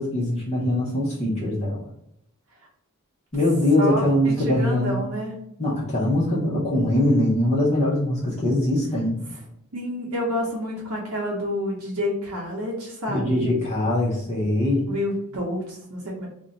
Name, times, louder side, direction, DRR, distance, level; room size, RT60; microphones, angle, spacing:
voice 1, 0.0-1.8 3.3-4.9 5.6-9.2 13.1-14.9, left 1 dB, 30° left, -5 dB, 0.6 m, -22 dB
voice 2, 3.8-5.3 9.3-9.4 9.7-13.5 14.9-16.3, left 1 dB, 70° right, -3 dB, 0.7 m, -29 dB
2.4 x 2.1 x 3.9 m, 0.75 s
head